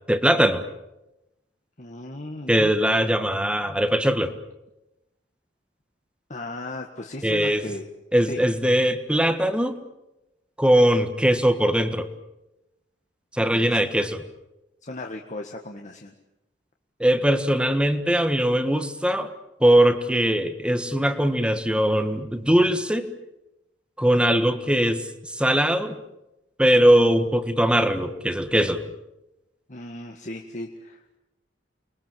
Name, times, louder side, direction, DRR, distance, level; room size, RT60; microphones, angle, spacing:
voice 1, 0.1-0.6 2.5-4.3 7.2-7.7 8.1-9.8 10.6-12.1 13.3-14.2 17.0-19.3 19.6-23.1 24.0-26.0 26.6-28.9, equal, 5° right, 9 dB, 1.6 m, -21 dB
voice 2, 1.8-2.7 6.3-7.9 8.3-8.4 13.4-13.8 14.8-16.1 29.7-31.2, left 1 dB, 40° left, 2 dB, 1.8 m, -36 dB
29.5 x 22.5 x 7.7 m, 0.95 s
head